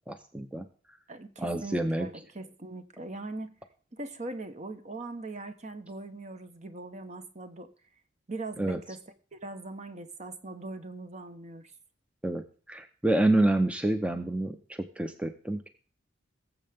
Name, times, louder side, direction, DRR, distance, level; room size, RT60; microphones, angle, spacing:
voice 1, 0.1-0.7 1.4-2.1 8.6-8.8 12.2-15.7, right 1 dB, 5° right, 0.7 m, -28 dB
voice 2, 1.1-3.5 3.9-7.7 8.3-9.0 9.3-11.7, right 2 dB, 40° right, 1.1 m, -40 dB
19.5 x 7.7 x 3.6 m
head